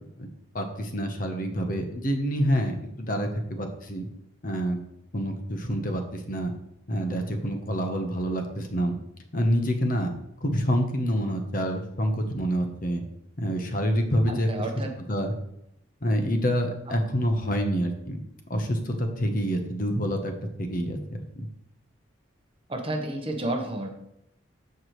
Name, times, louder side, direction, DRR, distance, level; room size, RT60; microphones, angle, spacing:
voice 1, 0.5-4.1 4.4-4.8 5.1-6.5 6.9-9.0 9.3-10.1 10.4-13.0 13.4-14.5 15.1-15.3 16.0-18.2 18.5-20.3 20.6-21.0, equal, 45° left, 5 dB, 1.0 m, -27 dB
voice 2, 14.3-15.0 22.7-23.9, right 1 dB, 25° right, 3 dB, 1.0 m, -31 dB
14.0 x 4.8 x 3.1 m, 0.80 s
head